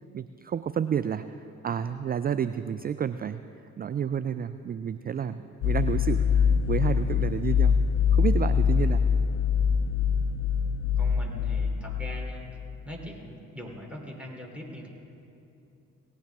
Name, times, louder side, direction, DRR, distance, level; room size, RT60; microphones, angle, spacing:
voice 1, 0.1-1.2 1.6-3.4 3.8-7.8 8.1-9.0, right 8 dB, 25° right, 12 dB, 0.3 m, -30 dB
sound 1, 5.6-12.7, left 7 dB, 75° left, 0.6 m, -24 dB
voice 2, 8.7-9.2 11.0-12.5 12.8-14.9, equal, 5° right, -1 dB, 3.1 m, -42 dB
18.0 x 10.0 x 3.5 m, 2.7 s
hypercardioid pair, 40°, 38 cm